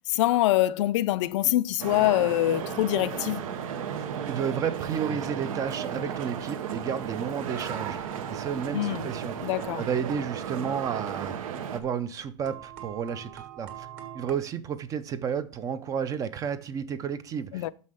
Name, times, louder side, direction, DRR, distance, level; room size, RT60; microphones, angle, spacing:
voice 1, 0.1-3.5 8.7-9.1 9.4-9.8 17.5-17.7, left 15 dB, 60° left, 0.4 m, -24 dB
sound 1, 1.8-11.8, right 8 dB, 80° right, 1.0 m, -34 dB
voice 2, 4.0-8.0 8.3-9.5 9.8-11.4 11.7-13.9 14.1-17.7, right 7 dB, 20° right, 0.4 m, -32 dB
sound 2, 12.5-14.3, right 11 dB, 40° right, 1.7 m, -45 dB
6.4 x 5.5 x 6.3 m
supercardioid pair, 155°, 17 cm